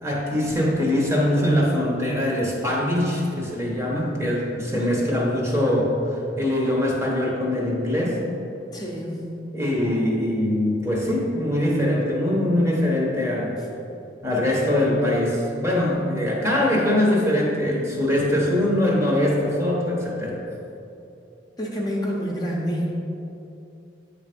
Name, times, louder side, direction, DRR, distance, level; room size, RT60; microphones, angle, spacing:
voice 1, 0.0-5.9 6.4-8.2 9.5-13.6 14.2-20.4, left 1 dB, 15° right, -3 dB, 1.0 m, -22 dB
voice 2, 8.7-9.3 21.6-22.9, equal, 20° left, -3 dB, 0.8 m, -28 dB
9.2 x 3.3 x 5.2 m, 2.8 s
head